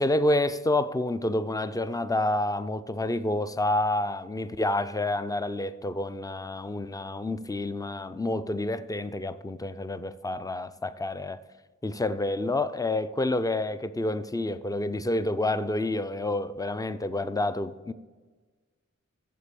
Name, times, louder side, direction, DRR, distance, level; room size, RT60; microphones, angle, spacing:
voice 1, 0.0-11.4 11.8-17.9, left 2 dB, 10° left, 0.5 m, -28 dB
8.6 x 7.4 x 6.9 m
wide cardioid pair, 55°, 29 cm